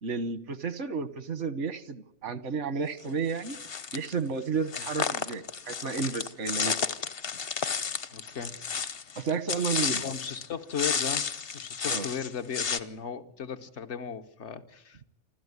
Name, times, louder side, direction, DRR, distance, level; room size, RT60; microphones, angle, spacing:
voice 1, 0.0-3.6 3.9-6.7 9.2-10.1 11.8-12.0, right 5 dB, 90° right, 15 dB, 1.5 m, -32 dB
sound 1, 3.4-4.1 4.7-10.5 10.7-12.8, left 6 dB, 55° left, 1.2 m, -32 dB
voice 2, 8.1-8.6 10.0-11.2 11.5-15.1, left 7 dB, 75° left, 7 dB, 1.5 m, -36 dB
28.5 x 13.0 x 9.6 m, 0.80 s
omnidirectional pair, 1.2 m